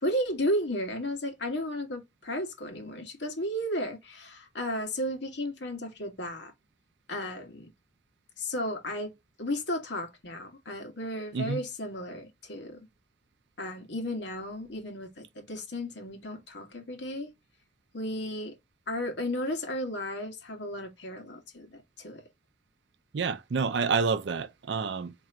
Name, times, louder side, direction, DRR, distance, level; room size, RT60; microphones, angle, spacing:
voice 1, 0.0-6.5 7.1-7.7 8.4-9.1 9.4-12.9 13.6-17.3 17.9-18.5 18.9-22.2, equal, 70° left, 1.3 m, -34 dB
voice 2, 23.1-25.1, right 5 dB, 70° right, 0.5 m, -28 dB
4.3 x 2.9 x 2.4 m
head